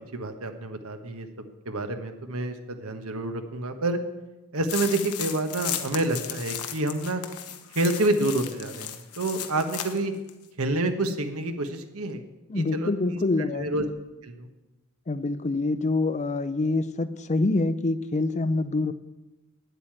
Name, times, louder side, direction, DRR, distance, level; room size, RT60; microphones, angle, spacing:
voice 1, 0.1-1.3 1.6-4.0 4.5-7.2 7.7-10.1 10.6-12.2 12.5-13.9 14.2-14.5, right 2 dB, 65° right, 7 dB, 1.3 m, -28 dB
sound 1, 4.7-10.0 10.3-10.4, left 10 dB, 80° left, 1.1 m, -35 dB
voice 2, 12.5-13.7 15.1-18.9, left 2 dB, 30° left, 13 dB, 0.5 m, -26 dB
9.4 x 8.2 x 8.8 m, 1.1 s
head